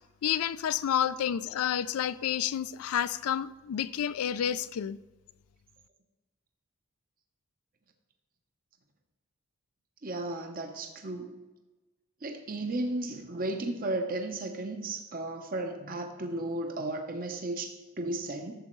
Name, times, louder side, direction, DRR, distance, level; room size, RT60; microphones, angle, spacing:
voice 1, 0.2-5.0, left 9 dB, 70° left, 0.3 m, -30 dB
voice 2, 10.0-11.3 12.2-18.5, right 2 dB, 40° right, 0.8 m, -34 dB
11.5 x 7.5 x 3.1 m
head